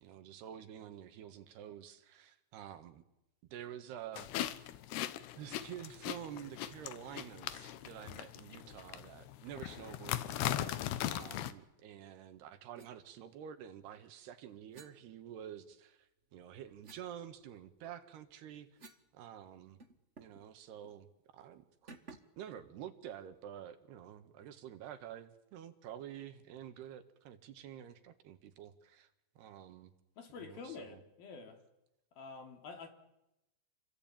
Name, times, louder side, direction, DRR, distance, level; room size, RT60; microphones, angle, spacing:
voice 1, 0.0-3.0 3.5-4.3 5.4-18.7 19.1-19.8 20.2-21.9 22.4-29.1 29.4-29.9 30.4-31.0, right 10 dB, 85° right, 3.8 m, -49 dB
sound 1, 4.2-11.5, left 13 dB, 85° left, 3.2 m, -39 dB
sound 2, 10.5-10.8 12.8-12.9 14.7-15.8 16.2-19.1 19.4-19.5 19.8-20.5 20.8-21.0 21.9-22.4, right 3 dB, 50° right, 0.8 m, -58 dB
voice 2, 30.2-31.6 32.1-32.9, left 4 dB, 65° left, 5.0 m, -48 dB
29.0 x 22.0 x 9.0 m
omnidirectional pair, 4.6 m